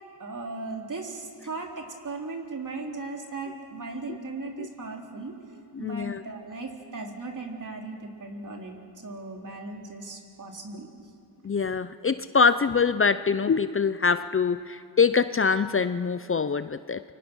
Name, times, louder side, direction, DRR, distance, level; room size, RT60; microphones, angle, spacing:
voice 1, 0.2-5.4 5.8-10.9, right 3 dB, 50° right, 1 dB, 3.6 m, -37 dB
voice 2, 5.8-6.2 11.4-17.0, left 5 dB, 30° left, 13 dB, 0.6 m, -24 dB
28.5 x 24.0 x 6.3 m, 2.4 s
cardioid pair, 75°, 41 cm